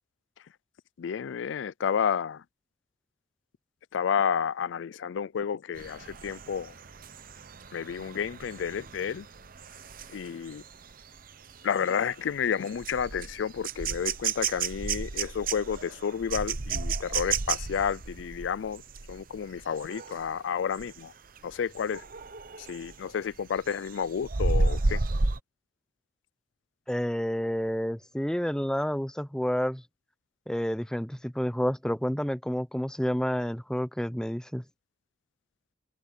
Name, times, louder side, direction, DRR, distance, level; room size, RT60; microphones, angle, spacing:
voice 1, 1.0-2.4 3.9-6.7 7.7-9.3 10.1-10.6 11.6-18.8 19.1-21.1 21.4-22.0 22.6-25.0, left 7 dB, 70° left, 0.4 m, -31 dB
sound 1, 5.8-20.3 20.7-21.0 21.4-23.0 23.4-25.4, right 4 dB, 45° right, 0.9 m, -33 dB
voice 2, 26.9-29.8 30.5-34.6, equal, 5° left, 0.6 m, -29 dB
open air
head